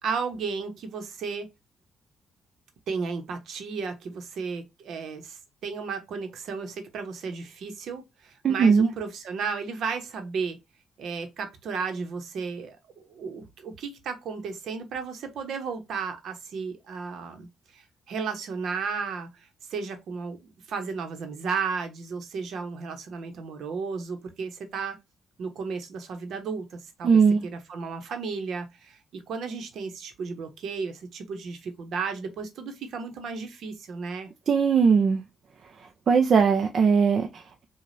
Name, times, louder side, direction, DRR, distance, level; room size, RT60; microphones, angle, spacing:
voice 1, 0.0-1.5 2.9-10.6 11.0-25.0 25.4-34.3, right 5 dB, 70° right, 1.0 m, -34 dB
voice 2, 8.4-8.9 27.0-27.4 34.5-35.2 36.1-37.7, right 6 dB, 50° right, 0.6 m, -20 dB
4.9 x 2.4 x 2.7 m
cardioid pair, 90°, 0 cm